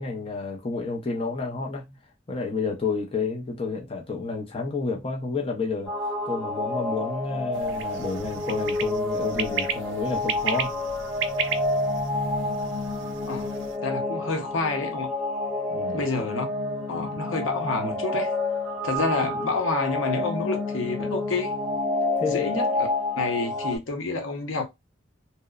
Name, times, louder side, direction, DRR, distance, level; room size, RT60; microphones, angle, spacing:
voice 1, 0.0-2.0 2.3-5.9 6.2-10.7 15.7-16.0 22.2-22.6, left 4 dB, 30° left, 0.4 m, -30 dB
sound 1, 5.9-23.8, left 2 dB, ahead, 0.7 m, -29 dB
sound 2, 7.5-13.8, right 7 dB, 70° right, 0.4 m, -34 dB
voice 2, 13.8-15.1 15.9-16.5 16.9-18.3 18.8-21.5 22.2-22.9 23.2-24.7, left 3 dB, 85° left, 0.7 m, -28 dB
2.9 x 2.0 x 2.3 m
head